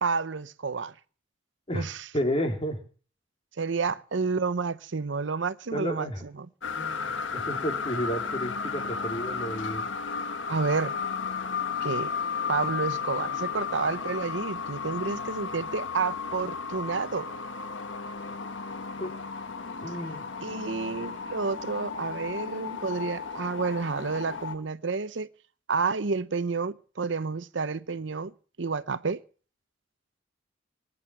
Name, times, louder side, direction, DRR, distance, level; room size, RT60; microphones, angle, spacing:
voice 1, 0.0-0.9 1.7-2.0 3.6-6.1 10.5-11.0 11.8-12.1 12.5-17.3 20.4-25.3 25.7-28.3 28.6-29.2, right 4 dB, 70° right, 0.7 m, -30 dB
voice 2, 2.1-2.8 5.7-6.2 6.7-9.9 19.0-19.1 19.8-20.2, equal, 30° left, 3.4 m, -31 dB
sound 1, 6.6-24.6, left 5 dB, 85° left, 1.3 m, -34 dB
20.0 x 9.5 x 7.1 m
head